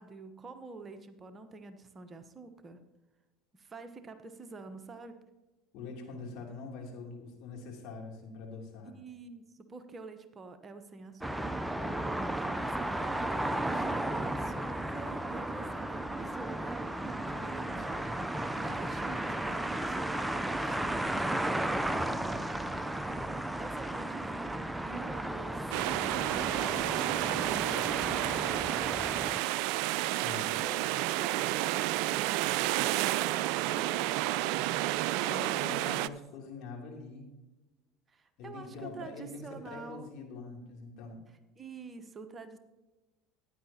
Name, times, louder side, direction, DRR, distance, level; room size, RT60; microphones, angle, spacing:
voice 1, 0.0-2.8 3.5-5.2 8.8-18.0 18.6-20.8 21.2-25.6 26.0-29.7 30.4-30.8 31.1-34.6 35.2-36.1 38.1-40.1 41.6-42.6, right 4 dB, 30° right, 8 dB, 1.0 m, -47 dB
voice 2, 5.7-8.9 30.1-30.6 35.2-37.3 38.4-41.2, left 4 dB, 60° left, 0 dB, 3.0 m, -44 dB
sound 1, 11.2-29.4, right 1 dB, 5° right, 0.6 m, -34 dB
sound 2, 25.7-36.1, right 16 dB, 65° right, 0.3 m, -30 dB
15.0 x 10.0 x 2.9 m, 1.1 s
hypercardioid pair, 75°, 0 cm